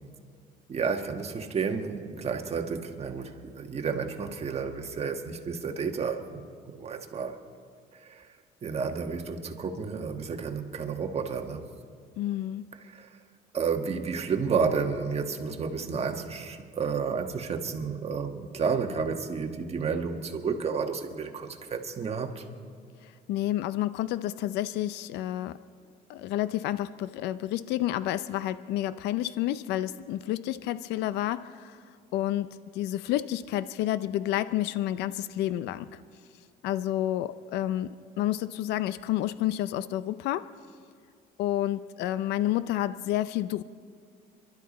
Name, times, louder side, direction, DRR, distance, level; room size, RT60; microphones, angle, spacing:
voice 1, 0.7-6.4 6.7-7.4 7.9-8.3 8.6-11.7 12.8-13.2 13.5-22.5, right 5 dB, 40° right, 4 dB, 1.5 m, -31 dB
voice 2, 12.2-12.6 23.0-25.6 26.1-31.8 32.1-35.9 36.6-40.5 41.4-43.6, left 13 dB, 85° left, 14 dB, 0.5 m, -30 dB
27.0 x 12.0 x 4.2 m, 2.1 s
cardioid pair, 110°, 17 cm